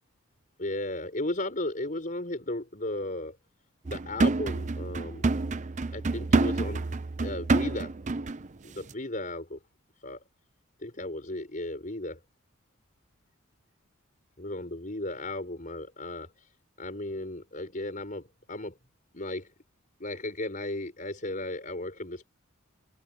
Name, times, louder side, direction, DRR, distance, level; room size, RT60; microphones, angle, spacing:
voice 1, 0.6-3.4 3.9-5.2 5.9-6.9 7.2-7.9 8.6-9.6 10.0-10.2 10.8-12.2 14.4-16.5 16.8-18.7 19.1-19.5 20.0-22.3, left 1 dB, 40° left, 5.2 m, -35 dB
sound 1, 3.8-8.5 8.8-8.9, right 3 dB, 35° right, 0.6 m, -28 dB
head